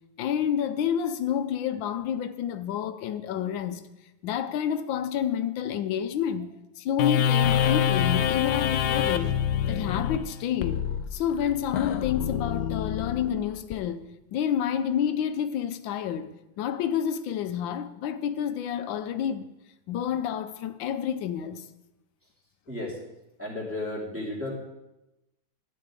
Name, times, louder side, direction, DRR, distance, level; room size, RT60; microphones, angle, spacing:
voice 1, 0.2-3.8 4.2-9.4 9.7-14.0 14.3-19.4 19.9-21.7, left 9 dB, 85° left, 1.4 m, -29 dB
sound 1, 7.0-13.8, left 9 dB, 70° left, 0.9 m, -26 dB
voice 2, 22.7-23.0 23.4-24.5, left 1 dB, 5° right, 2.9 m, -33 dB
13.0 x 9.2 x 3.8 m
omnidirectional pair, 2.0 m